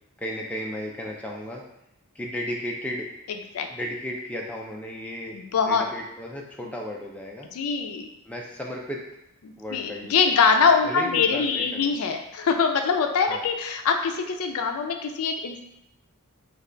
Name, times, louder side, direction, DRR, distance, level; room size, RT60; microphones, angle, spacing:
voice 1, 0.2-1.6 2.1-3.1 3.7-5.4 5.7-7.5 8.2-9.0 9.6-12.0 13.2-13.5, equal, 5° left, -1 dB, 0.3 m, -34 dB
voice 2, 5.3-5.8 7.5-8.1 9.4-15.6, left 5 dB, 75° left, 5 dB, 0.4 m, -23 dB
3.3 x 2.3 x 3.7 m, 0.83 s
head